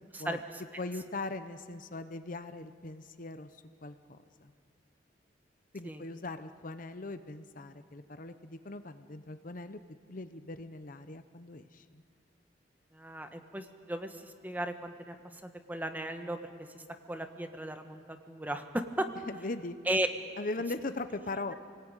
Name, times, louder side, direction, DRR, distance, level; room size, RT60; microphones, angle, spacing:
voice 1, 0.8-4.5 5.7-9.8 10.1-12.0 19.3-19.8 20.4-21.5, left 2 dB, 45° left, 10 dB, 0.8 m, -40 dB
voice 2, 12.9-15.4 15.7-19.1 19.8-20.1, right 1 dB, 10° right, 6 dB, 1.3 m, -36 dB
29.0 x 19.0 x 9.0 m, 2.2 s
head